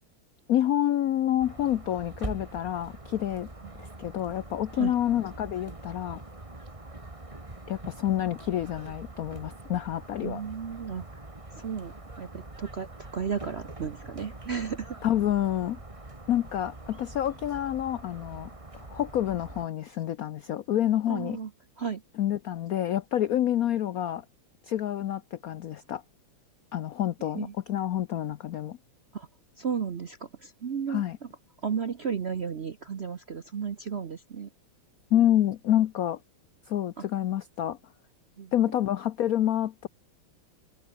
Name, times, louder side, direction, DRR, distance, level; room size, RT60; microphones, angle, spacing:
voice 1, 0.5-3.5 3.8-6.2 7.7-10.4 15.0-15.8 16.3-18.5 18.9-21.4 22.2-24.2 24.7-26.0 26.7-28.8 30.9-31.2 35.1-36.2 36.7-37.8 38.5-39.9, left 12 dB, 90° left, 0.7 m, -28 dB
sound 1, 1.4-19.7, right 2 dB, 15° right, 2.2 m, -44 dB
voice 2, 10.2-11.0 11.6-11.9 12.2-15.0 21.1-21.5 21.8-22.0 27.3-27.5 29.1-29.3 29.6-31.0 31.6-34.5 37.0-37.1 38.4-38.5, right 6 dB, 55° right, 0.7 m, -33 dB
omnidirectional pair, 2.4 m